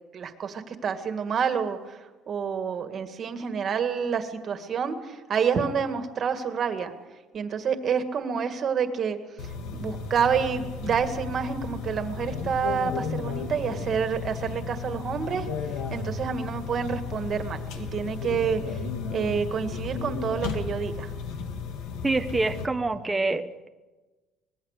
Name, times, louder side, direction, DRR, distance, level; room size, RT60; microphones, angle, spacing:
voice 1, 0.1-2.0 2.3-6.9 7.3-9.2 9.7-15.5 15.9-18.8 19.1-21.1, right 6 dB, 35° right, 8 dB, 1.9 m, -28 dB
sound 1, 9.4-22.7, left 5 dB, 80° left, 2.6 m, -34 dB
voice 2, 22.0-23.7, right 2 dB, 10° right, 6 dB, 0.9 m, -26 dB
24.5 x 20.5 x 6.7 m, 1.2 s
cardioid pair, 155°, 0 cm